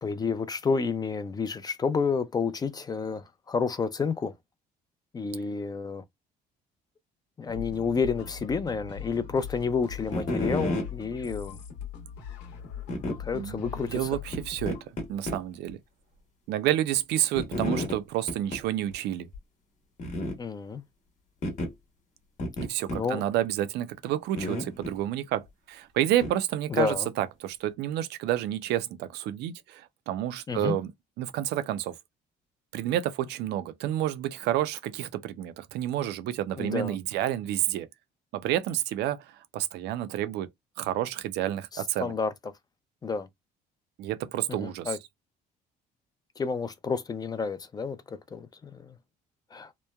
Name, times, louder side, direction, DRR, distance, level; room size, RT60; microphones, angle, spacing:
voice 1, 0.0-4.3 5.1-6.0 7.4-11.6 13.1-14.1 20.4-20.8 23.0-23.2 26.7-27.1 30.5-30.8 36.6-37.0 41.7-42.5 43.0-43.3 44.5-45.0 46.4-49.0 49.5-49.7, left 5 dB, 25° left, 0.4 m, -30 dB
sound 1, 7.5-14.9, left 8 dB, 85° left, 0.9 m, -41 dB
sound 2, 10.1-10.9 11.8-11.9 12.9-13.2 14.3-14.4 14.7-15.4 15.7-15.8 17.4-18.0 18.3-18.6 18.9-19.0 19.3-19.4 20.0-20.4 21.4-21.7 22.4-23.0 24.4-24.9 26.2-26.3, left 1 dB, 45° left, 1.0 m, -31 dB
voice 2, 13.3-14.8 15.1-15.8 16.5-19.3 22.6-30.9 31.2-31.9 32.7-37.9 38.3-39.2 39.5-40.5 40.8-42.1 44.0-45.0, right 12 dB, 80° right, 0.5 m, -29 dB
3.0 x 2.1 x 2.2 m
cardioid pair, 110°, 17 cm